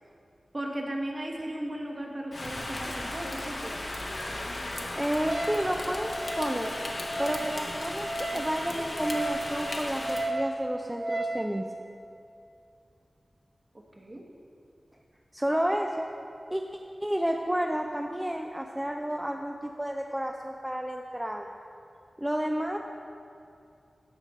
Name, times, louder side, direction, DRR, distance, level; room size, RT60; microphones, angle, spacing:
voice 1, 0.5-3.8 13.7-14.2, right 1 dB, 35° right, 0 dB, 1.1 m, -36 dB
Rain, 2.3-10.3, left 1 dB, 50° left, 0.9 m, -36 dB
voice 2, 5.0-6.7 7.2-11.7 15.3-16.1 16.5-16.6 17.0-21.5 22.2-22.8, equal, 10° right, 2 dB, 0.4 m, -31 dB
Wind instrument woodwind instrument, 5.3-11.4, right 1 dB, 55° right, 1.3 m, -35 dB
13.0 x 4.9 x 4.2 m, 2.5 s
wide cardioid pair, 80°, 0 cm